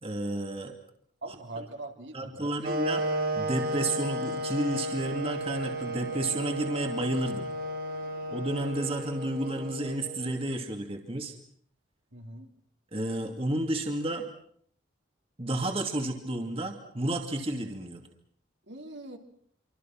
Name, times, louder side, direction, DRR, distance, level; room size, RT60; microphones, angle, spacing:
voice 1, 0.0-0.7 1.3-1.4 2.1-3.0 3.3-7.5 8.3-11.4 12.9-14.3 15.4-18.0, right 1 dB, 30° right, 3 dB, 2.5 m, -31 dB
voice 2, 1.2-2.6 12.1-12.5 18.7-19.2, right 2 dB, 65° right, 3 dB, 3.3 m, -42 dB
sound 1, 2.6-10.6, right 1 dB, 50° right, 2.3 m, -33 dB
27.5 x 25.5 x 6.0 m, 0.62 s
head